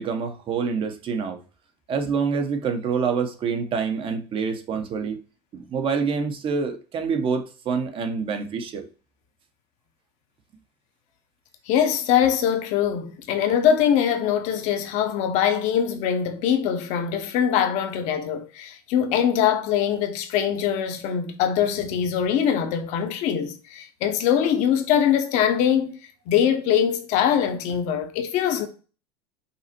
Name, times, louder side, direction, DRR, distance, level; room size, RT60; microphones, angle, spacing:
voice 1, 0.0-1.4 1.9-5.2 5.5-8.9, right 5 dB, 40° right, 1.0 m, -26 dB
voice 2, 11.7-25.9 26.3-28.7, left 9 dB, 65° left, 1.0 m, -22 dB
5.5 x 2.1 x 4.3 m
supercardioid pair, 105°, 13 cm